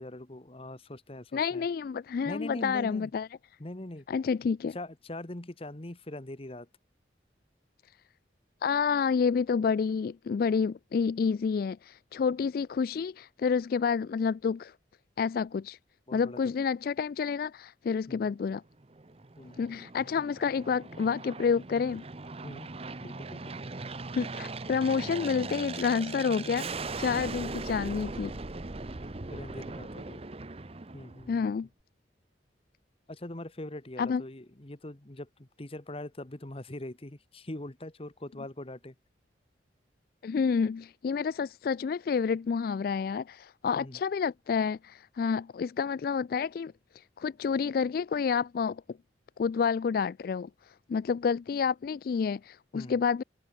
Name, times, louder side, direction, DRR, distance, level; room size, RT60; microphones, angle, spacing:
voice 1, 0.0-1.7 2.2-3.1 3.6-4.0 4.7-6.7 16.1-16.4 18.1-18.3 19.4-19.6 22.4-22.7 23.0-23.6 29.3-30.2 30.9-31.5 33.1-38.9 43.7-44.0 52.7-53.0, left 1 dB, 30° left, 1.3 m, -42 dB
voice 2, 1.3-3.3 4.1-4.8 8.6-14.7 15.2-15.8 16.1-18.6 19.6-22.0 24.2-28.3 31.3-31.7 34.0-34.2 40.2-48.8 49.4-53.2, left 6 dB, 55° left, 0.3 m, -29 dB
Aircraft, 18.8-31.5, right 3 dB, 35° right, 0.8 m, -40 dB
head